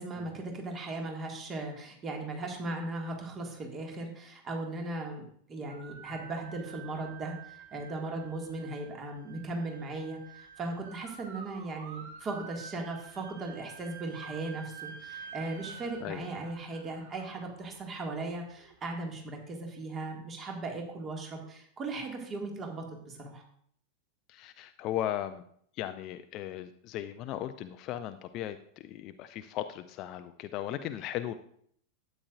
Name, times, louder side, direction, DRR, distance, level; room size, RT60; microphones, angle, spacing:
voice 1, 0.0-23.4, right 2 dB, 25° right, 1 dB, 2.0 m, -38 dB
sound 1, 5.7-18.7, right 6 dB, 55° right, 1.4 m, -49 dB
voice 2, 24.3-25.4 25.8-31.3, left 12 dB, 35° left, 9 dB, 0.5 m, -37 dB
12.5 x 8.9 x 2.5 m, 0.63 s
figure-of-eight pair, 90°, 0 cm